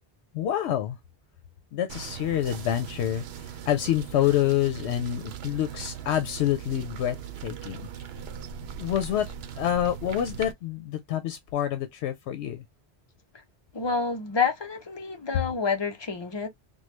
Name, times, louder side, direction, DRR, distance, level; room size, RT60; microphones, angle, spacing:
voice 1, 0.3-1.0 1.7-7.2 7.4-7.8 8.8-9.3 9.6-12.6, left 11 dB, 85° left, 0.9 m, -27 dB
sound 1, 1.9-10.5, right 8 dB, 75° right, 0.8 m, -39 dB
voice 2, 13.7-16.5, left 5 dB, 30° left, 0.6 m, -28 dB
3.1 x 2.2 x 3.1 m
omnidirectional pair, 1.1 m